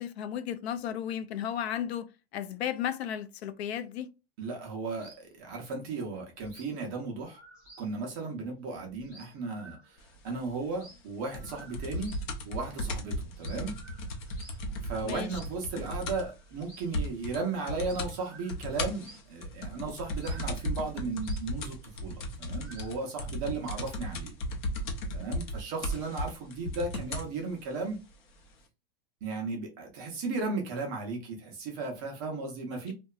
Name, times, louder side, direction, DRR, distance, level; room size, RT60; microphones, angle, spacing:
voice 1, 0.0-2.1 2.3-4.1 15.0-15.4, left 9 dB, 90° left, 0.5 m, -34 dB
voice 2, 4.4-7.4 7.8-10.0 10.2-12.2 12.4-13.8 14.4-24.3 25.1-28.0 29.2-32.9, right 3 dB, 20° right, 0.4 m, -35 dB
sound 1, 5.0-5.3 5.6-5.7 6.0-6.1 6.3-6.8 7.1-8.0 8.2-8.3 8.5-8.6 8.9-10.2 10.4-12.3 12.7-12.9 13.3-14.7 15.2-15.6 15.9-17.5 17.7-19.4 20.1-23.2, right 2 dB, 10° left, 0.8 m, -54 dB
sound 2, 11.3-16.4 16.6-16.7 16.9-17.4 17.7-18.1 18.5-27.3 28.1-28.2, left 1 dB, 50° left, 0.7 m, -35 dB
2.7 x 2.2 x 2.3 m
supercardioid pair, 170°, 31 cm